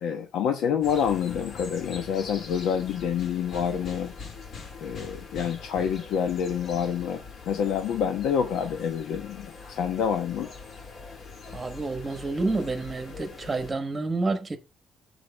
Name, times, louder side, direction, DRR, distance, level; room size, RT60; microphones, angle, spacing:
voice 1, 0.0-4.1 4.8-10.5, left 8 dB, 90° left, 1.0 m, -27 dB
sound 1, 0.8-13.7, left 4 dB, 40° left, 1.6 m, -42 dB
voice 2, 11.5-14.6, right 3 dB, 15° right, 1.2 m, -29 dB
6.3 x 5.1 x 4.9 m
cardioid pair, 175°, 0 cm